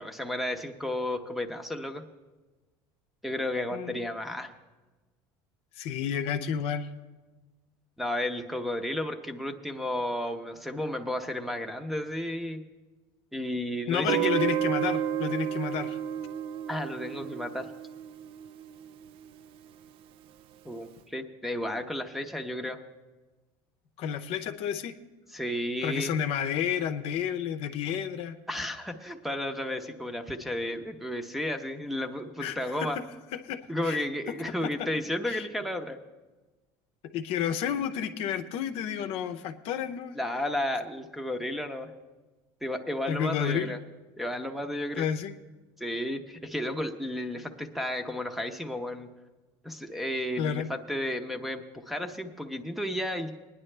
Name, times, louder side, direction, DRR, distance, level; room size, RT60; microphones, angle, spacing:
voice 1, 0.0-2.0 3.2-4.5 8.0-12.6 13.3-14.3 16.7-17.7 20.6-22.8 25.3-26.1 28.5-33.0 33.7-36.0 40.2-41.9 42.6-43.8 44.2-45.1 45.8-49.1 49.6-53.3, left 1 dB, ahead, 7 dB, 0.8 m, -33 dB
voice 2, 5.8-6.9 13.9-16.0 24.0-25.0 25.8-28.4 32.4-33.0 33.3-34.0 34.3-34.4 34.6-34.9 35.3-35.4 37.1-40.1 43.1-43.8 45.0-45.3 50.4-50.7, left 8 dB, 65° left, 8 dB, 0.7 m, -31 dB
Guitar, 14.1-18.9, right 10 dB, 55° right, 0.4 m, -31 dB
19.5 x 9.9 x 3.3 m, 1.2 s
supercardioid pair, 115°, 11 cm